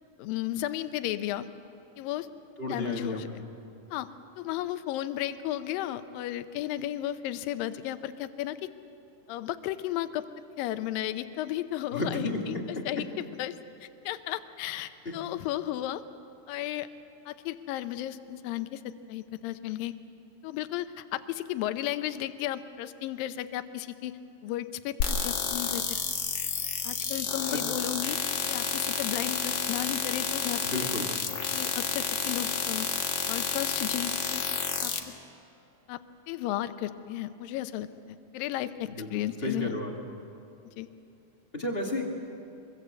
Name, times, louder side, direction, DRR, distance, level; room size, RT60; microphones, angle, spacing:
voice 1, 0.2-1.5 2.0-2.3 2.7-3.3 3.9-4.1 4.4-8.7 9.3-10.2 10.6-12.6 12.9-13.1 13.4-16.0 16.5-16.9 17.3-19.9 20.4-24.1 24.4-25.8 26.8-28.2 28.5-30.9 31.5-32.9 33.3-34.4 34.8-34.9 35.9-36.0 36.3-39.8 40.8-40.9, left 13 dB, 80° left, 11 dB, 2.5 m, -34 dB
voice 2, 2.6-3.2 11.9-13.0 15.0-15.1 27.5-27.6 30.7-31.1 38.9-39.9 41.5-42.1, left 2 dB, 20° left, 1 dB, 1.6 m, -32 dB
sound 1, 25.0-35.0, left 8 dB, 60° left, 2.8 m, -30 dB
24.5 x 23.0 x 8.2 m, 2.8 s
omnidirectional pair, 4.1 m